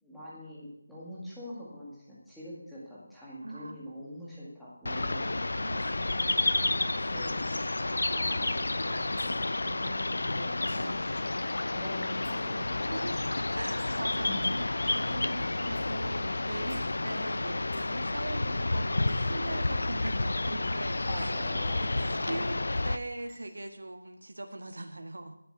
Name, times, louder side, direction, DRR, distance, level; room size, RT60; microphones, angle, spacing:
voice 1, 0.0-5.3 7.1-7.7 8.1-11.0 11.7-13.1 14.3-14.4 21.1-22.3, left 1 dB, ahead, -10 dB, 2.1 m, -44 dB
voice 2, 3.4-3.9 5.6-8.3 10.8-11.4 12.9-13.2 13.5-21.3 21.8-25.4, right 2 dB, 80° right, 6 dB, 1.5 m, -41 dB
sound 1, 4.8-23.0, left 2 dB, 65° left, 0.7 m, -30 dB
sound 2, 9.2-9.4 10.7-11.0 12.2-12.7 13.8-14.7 15.8-16.0 16.7-16.9 17.7-17.9 19.1-19.3 20.1-20.3 21.2-21.5 22.2-22.4 23.2-23.8, right 2 dB, 15° right, 5.1 m, -57 dB
11.5 x 7.9 x 8.2 m, 0.82 s
figure-of-eight pair, 180°, 0 cm